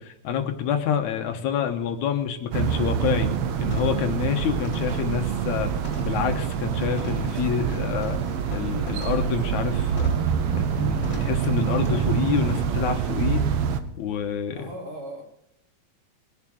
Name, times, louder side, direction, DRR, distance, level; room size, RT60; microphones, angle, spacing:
voice 1, 0.0-3.3 3.6-5.7 6.0-8.2 8.5-10.1 10.5-13.4 14.0-14.7, left 8 dB, 70° left, 6 dB, 2.4 m, -27 dB
sound 1, 1.9-2.0 2.4-2.7 3.0-3.4 3.7-4.1 4.6-6.3 7.0-7.3 8.0-9.3 10.0-10.3 11.0-11.4 11.8-11.9, left 4 dB, 10° left, 3.4 m, -43 dB
sound 2, 2.5-13.8, right 7 dB, 70° right, 1.5 m, -26 dB
sound 3, 7.1-13.5, right 3 dB, 90° right, 4.3 m, -45 dB
voice 2, 14.5-15.2, equal, 45° right, 0 dB, 3.5 m, -37 dB
21.5 x 7.3 x 6.3 m, 0.78 s
omnidirectional pair, 3.6 m